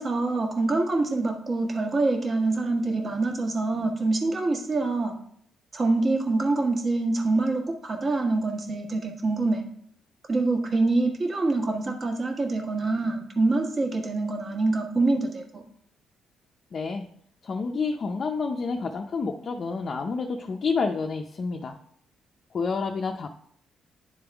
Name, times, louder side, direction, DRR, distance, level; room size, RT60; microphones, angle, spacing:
voice 1, 0.0-5.1 5.7-9.6 10.3-15.6, right 2 dB, 35° right, 2 dB, 1.4 m, -25 dB
voice 2, 16.7-17.0 17.4-21.8 22.5-23.3, left 4 dB, 45° left, 2 dB, 0.5 m, -29 dB
10.0 x 3.5 x 3.4 m, 0.65 s
cardioid pair, 90°, 0 cm